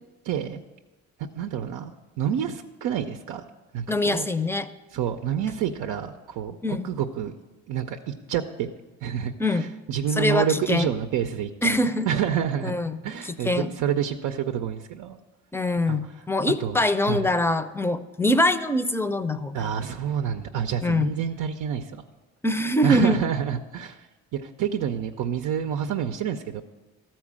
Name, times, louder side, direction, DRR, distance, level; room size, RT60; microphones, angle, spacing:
voice 1, 0.2-0.6 1.3-3.4 3.7-4.3 4.9-7.3 7.7-8.7 9.0-11.8 12.1-12.7 13.0-15.2 15.9-16.0 16.6-16.8 17.1-17.3 19.5-22.0 22.8-24.0 24.3-26.6, right 9 dB, 90° right, 5 dB, 0.6 m, -28 dB
voice 2, 3.9-4.7 6.6-6.9 9.4-9.7 10.2-10.9 11.6-12.1 12.6-13.0 13.2-13.7 15.5-19.7 20.8-21.1 22.4-23.2, left 1 dB, 10° left, 12 dB, 0.5 m, -24 dB
13.5 x 4.5 x 7.3 m, 1.2 s
cardioid pair, 90°, 30 cm